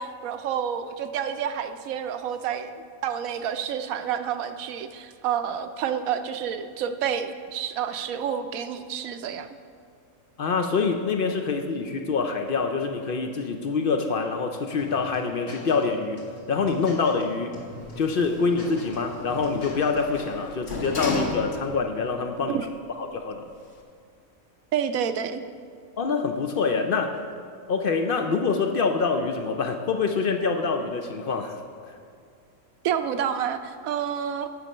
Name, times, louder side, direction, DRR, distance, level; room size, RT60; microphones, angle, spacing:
voice 1, 0.0-2.8 3.0-9.5 22.5-22.7 24.7-25.4 32.8-34.5, right 8 dB, 75° right, 9 dB, 1.0 m, -29 dB
voice 2, 10.4-17.6 18.0-22.6 23.0-23.5 26.0-27.2 27.7-31.6 31.9-32.0, left 4 dB, 65° left, 5 dB, 0.5 m, -26 dB
sound 1, 14.8-15.9 16.2-17.2 17.5-17.9 18.2-20.0, left 1 dB, 90° left, 2.5 m, -43 dB
Sliding door, 17.8-21.9 22.4-22.5, left 3 dB, 50° left, 1.5 m, -34 dB
8.2 x 7.6 x 5.4 m, 2.3 s
omnidirectional pair, 1.5 m